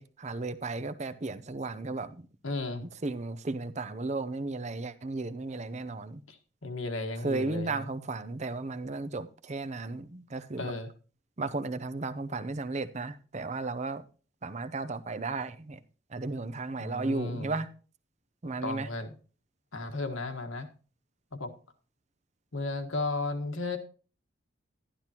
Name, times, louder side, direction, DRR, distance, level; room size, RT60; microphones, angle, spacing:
voice 1, 0.0-2.3 2.8-6.2 7.2-10.7 11.4-14.0 14.4-15.8 16.1-17.7 18.4-18.9, right 3 dB, 35° right, 0.6 m, -34 dB
voice 2, 2.4-2.9 6.3-7.9 10.6-10.9 16.8-17.6 18.6-19.1 19.7-20.7 21.3-21.5 22.5-23.8, left 3 dB, 80° left, 1.6 m, -34 dB
12.0 x 11.5 x 2.9 m
head